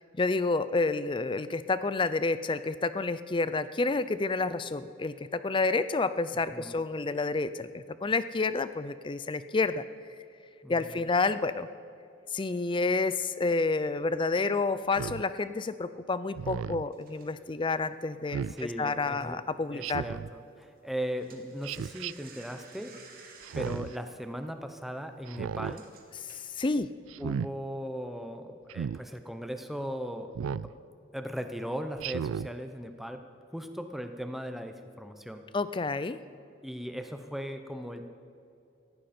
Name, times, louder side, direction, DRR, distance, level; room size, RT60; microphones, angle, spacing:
voice 1, 0.2-9.8 10.7-11.7 12.3-20.0 26.6-26.9 35.5-36.2, left 3 dB, 25° left, 14 dB, 0.4 m, -29 dB
voice 2, 10.6-11.0 18.5-19.4 19.7-22.9 23.5-25.8 27.2-30.6 31.1-33.2 33.5-35.4 36.6-38.1, equal, ahead, 6 dB, 0.8 m, -38 dB
Speech synthesizer, 14.9-15.2 16.3-16.9 18.3-18.6 19.8-20.3 21.6-22.1 23.4-24.0 25.3-25.8 27.1-27.5 28.7-29.0 30.3-30.7 32.0-32.5, right 7 dB, 80° right, 0.3 m, -34 dB
sound 1, 16.9-19.7 19.9-20.2 20.5-26.8, right 5 dB, 45° right, 2.0 m, -55 dB
18.0 x 15.0 x 4.4 m, 2.7 s
head